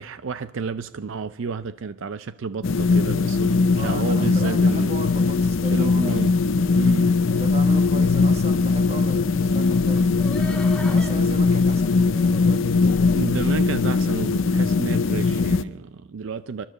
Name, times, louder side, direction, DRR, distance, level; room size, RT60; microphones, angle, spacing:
voice 1, 0.0-4.9 5.7-6.3 6.8-7.2 13.1-16.6, right 5 dB, 70° right, 0.5 m, -31 dB
sound 1, 2.6-15.6, left 4 dB, 75° left, 0.6 m, -20 dB
voice 2, 3.8-6.3 7.3-10.4 10.9-13.1, right 2 dB, 30° right, 1.2 m, -37 dB
sound 2, 9.6-12.7 13.1-13.2, equal, 5° left, 1.2 m, -39 dB
27.0 x 11.5 x 3.9 m
head